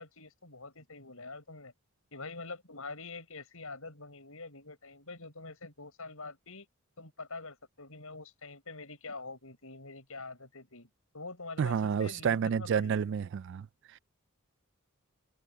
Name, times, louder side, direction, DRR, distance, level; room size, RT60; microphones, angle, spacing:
voice 1, 0.0-1.7 2.1-6.7 7.0-10.9 11.1-13.0, left 3 dB, 70° left, 7.4 m, -45 dB
voice 2, 11.6-13.7 13.9-14.0, right 7 dB, 55° right, 0.3 m, -30 dB
head